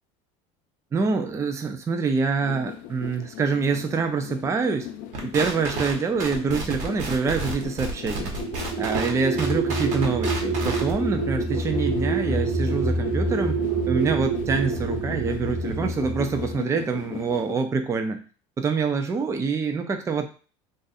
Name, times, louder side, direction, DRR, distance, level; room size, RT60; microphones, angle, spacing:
voice 1, 0.9-4.9 5.2-8.3 8.8-13.6 13.9-18.2 18.6-20.3, right 5 dB, 20° right, 6 dB, 0.5 m, -26 dB
sound 1, 2.4-17.6, left 11 dB, 65° left, 0.5 m, -37 dB
sound 2, 5.1-13.9, right 3 dB, 55° right, 1.1 m, -33 dB
sound 3, 8.3-16.6, right 3 dB, 70° right, 0.8 m, -27 dB
2.5 x 2.5 x 4.0 m, 0.37 s
supercardioid pair, 120°, 15 cm